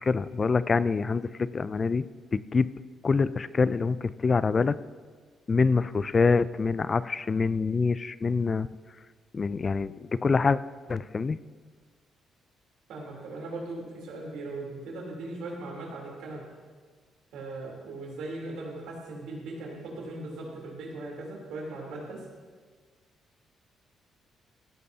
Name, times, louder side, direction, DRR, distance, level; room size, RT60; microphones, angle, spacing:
voice 1, 0.0-2.0 2.3-2.7 3.0-4.8 5.5-8.7 9.3-10.6 10.9-11.4, left 4 dB, 35° left, 16 dB, 0.4 m, -25 dB
voice 2, 12.9-16.4 17.3-22.2, right 2 dB, 90° right, -2 dB, 3.3 m, -39 dB
16.0 x 13.5 x 2.8 m, 1.5 s
cardioid pair, 90°, 0 cm